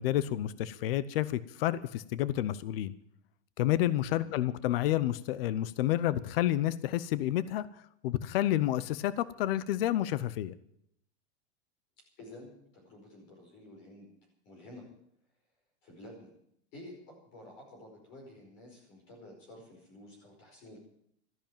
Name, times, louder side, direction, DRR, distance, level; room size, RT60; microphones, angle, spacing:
voice 1, 0.0-2.9 3.6-7.7 8.0-10.5, left 13 dB, 55° left, 17 dB, 0.8 m, -30 dB
voice 2, 4.1-4.5 12.2-14.1 14.4-14.8 15.8-16.3 16.7-20.8, left 1 dB, 35° left, 0 dB, 5.0 m, -51 dB
13.5 x 10.5 x 8.9 m, 0.72 s
supercardioid pair, 175°, 34 cm